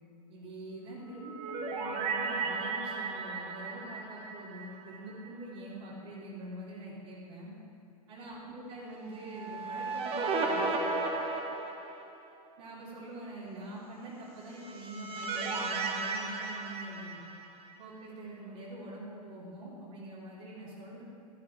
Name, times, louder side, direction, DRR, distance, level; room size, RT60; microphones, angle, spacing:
voice 1, 0.3-7.5 8.1-11.0 12.6-17.2 17.8-21.0, right 1 dB, 50° right, -8 dB, 3.0 m, -44 dB
sound 1, 1.0-5.3 5.6-5.7 9.2-12.3 14.4-17.8, right 3 dB, 30° right, 1.4 m, -35 dB
12.5 x 11.0 x 4.8 m, 2.4 s
figure-of-eight pair, 95°, 20 cm